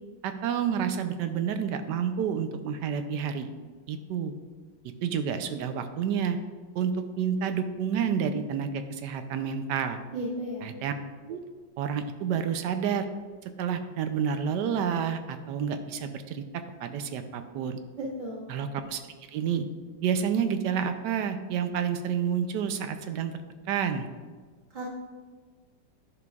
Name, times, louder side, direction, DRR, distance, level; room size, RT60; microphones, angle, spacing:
voice 1, 0.2-3.5 3.9-4.3 5.0-6.4 6.7-6.9 7.2-10.0 10.6-10.9 11.3-11.4 11.8-13.1 13.6-16.4 16.8-17.8 18.5-19.7 20.0-23.4 23.7-24.1, right 7 dB, 75° right, 8 dB, 1.2 m, -29 dB
voice 2, 10.1-10.7 18.0-18.4 24.7-24.8, right 1 dB, 25° right, -7 dB, 1.5 m, -34 dB
10.5 x 5.9 x 2.3 m, 1.5 s
omnidirectional pair, 1.9 m